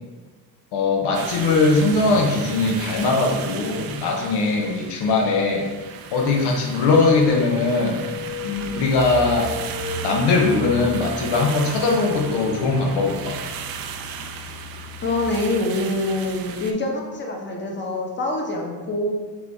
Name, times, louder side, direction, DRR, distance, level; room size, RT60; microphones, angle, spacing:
voice 1, 0.7-5.7 6.1-8.0 8.4-9.5 10.0-13.4, left 3 dB, 75° left, 0 dB, 0.8 m, -20 dB
sound 1, 1.1-16.7, right 7 dB, 60° right, 0.5 m, -36 dB
sound 2, 7.2-10.8, left 5 dB, 45° left, 1.5 m, -36 dB
sound 3, 8.0-8.1 8.4-15.3, left 1 dB, 20° right, 0.9 m, -39 dB
voice 2, 15.0-19.1, left 2 dB, 25° left, 0 dB, 0.9 m, -25 dB
4.8 x 2.6 x 3.4 m, 1.3 s
cardioid pair, 85°, 41 cm